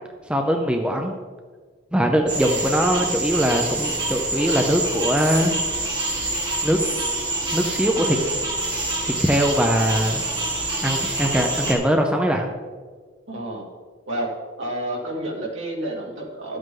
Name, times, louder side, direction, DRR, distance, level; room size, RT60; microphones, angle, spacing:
voice 1, 0.3-1.1 1.9-5.6 6.6-6.8 7.5-8.2 9.0-10.2 10.8-12.5, equal, 5° right, 2 dB, 0.6 m, -21 dB
sound 1, 2.3-11.7, right 2 dB, 20° right, 1.7 m, -26 dB
voice 2, 13.3-13.7 14.1-14.3 14.6-16.6, right 1 dB, 70° right, -3 dB, 2.5 m, -29 dB
11.5 x 8.1 x 3.8 m, 1.5 s
head